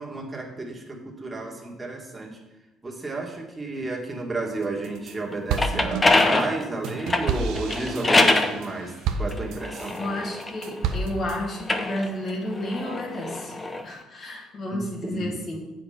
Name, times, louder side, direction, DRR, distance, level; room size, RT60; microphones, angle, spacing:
voice 1, 0.0-2.4 2.8-10.2 14.7-15.4, right 3 dB, 15° right, -1 dB, 1.9 m, -32 dB
sound 1, 4.6-5.1 5.5-10.0 10.4-11.4, right 5 dB, 75° right, 0.7 m, -30 dB
sound 2, 5.3-8.6 9.3-11.0 11.5-13.8, left 2 dB, 20° left, 0.8 m, -24 dB
voice 2, 10.0-13.5 13.8-15.7, left 1 dB, 45° left, -1 dB, 2.1 m, -31 dB
7.9 x 5.1 x 5.7 m, 1.0 s
supercardioid pair, 90°, 0 cm